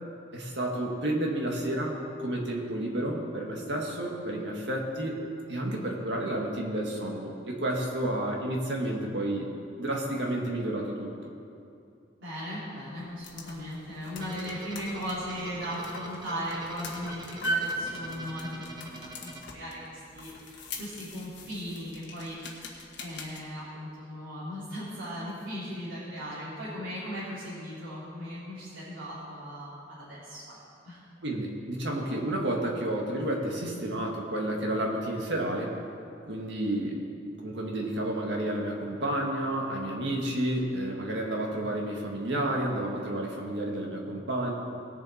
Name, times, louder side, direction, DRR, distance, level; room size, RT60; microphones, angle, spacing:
voice 1, 0.3-5.2 5.5-9.5 9.8-11.1 31.2-35.7 36.3-37.0 37.4-44.5, right 1 dB, 65° right, 0 dB, 1.9 m, -31 dB
voice 2, 12.2-30.6 30.8-31.0, equal, 80° right, -11 dB, 3.4 m, -38 dB
sound 1, 13.0-23.4, right 1 dB, 65° left, 1.4 m, -40 dB
sound 2, 14.2-20.2, right 1 dB, 25° right, 0.9 m, -46 dB
19.0 x 7.1 x 4.3 m, 2.6 s
head